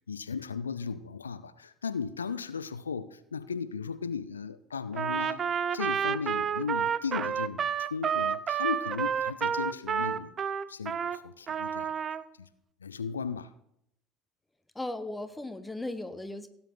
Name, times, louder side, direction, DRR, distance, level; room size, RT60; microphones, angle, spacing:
voice 1, 0.1-5.4 5.7-10.3 10.7-12.0 12.4-12.5 12.8-13.5, left 6 dB, 80° left, 15 dB, 0.4 m, -36 dB
Trumpet, 4.9-11.2 11.5-12.2, right 8 dB, 35° right, 0.5 m, -30 dB
voice 2, 14.7-16.5, left 2 dB, 10° left, 10 dB, 1.1 m, -36 dB
16.5 x 8.9 x 3.8 m, 0.77 s
figure-of-eight pair, 65°, 0 cm